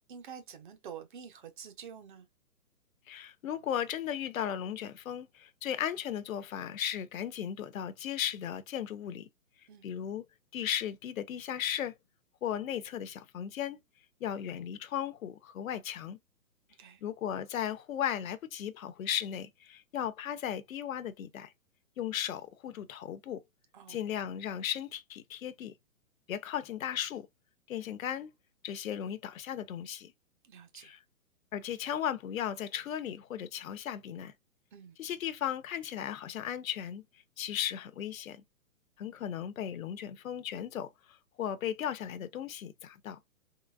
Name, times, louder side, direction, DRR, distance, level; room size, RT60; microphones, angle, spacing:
voice 1, 0.1-2.3 9.7-9.9 16.8-17.0 23.7-24.0 30.4-31.0 34.7-35.0, right 7 dB, 35° right, 0.7 m, -48 dB
voice 2, 3.1-9.3 9.8-10.2 10.5-11.9 12.4-13.8 14.2-16.2 17.0-21.5 22.0-23.4 23.9-25.7 26.3-27.3 27.7-28.3 28.6-30.1 30.8-31.0 31.5-34.3 35.0-37.0 37.4-38.4 39.0-43.2, left 10 dB, 65° left, 0.7 m, -36 dB
3.8 x 3.1 x 2.3 m
hypercardioid pair, 150°, 44 cm